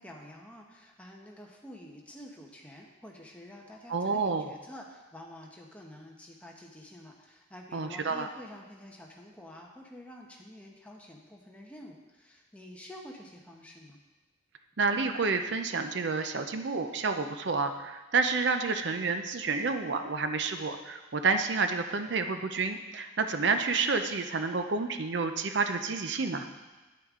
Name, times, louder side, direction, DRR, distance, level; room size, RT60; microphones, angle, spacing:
voice 1, 0.0-14.0, left 1 dB, 5° left, -1 dB, 0.9 m, -49 dB
voice 2, 3.9-4.5 7.7-8.3 14.8-26.5, right 4 dB, 60° right, 7 dB, 0.6 m, -29 dB
9.5 x 8.6 x 3.7 m, 1.2 s
head